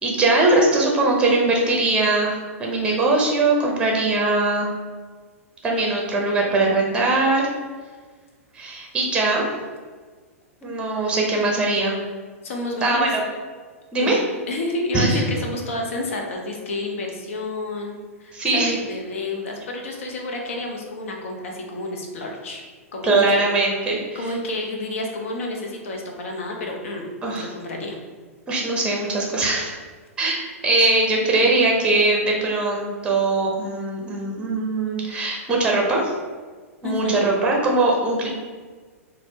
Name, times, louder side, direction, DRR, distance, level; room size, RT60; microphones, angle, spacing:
voice 1, 0.0-4.7 5.6-7.5 8.5-9.5 10.6-12.0 12.8-13.2 13.9-14.2 14.9-15.2 18.3-18.7 23.0-24.2 27.2-27.5 28.5-29.8 30.2-30.4 30.6-36.1 36.8-38.3, right 2 dB, 15° right, -1 dB, 0.7 m, -21 dB
voice 2, 12.4-13.1 14.0-14.2 14.5-22.6 22.9-23.4 24.1-27.1 27.4-28.0 30.8-30.9 36.8-37.3, left 2 dB, 60° left, 1 dB, 0.6 m, -29 dB
4.1 x 2.1 x 2.8 m, 1.5 s
figure-of-eight pair, 100°, 8 cm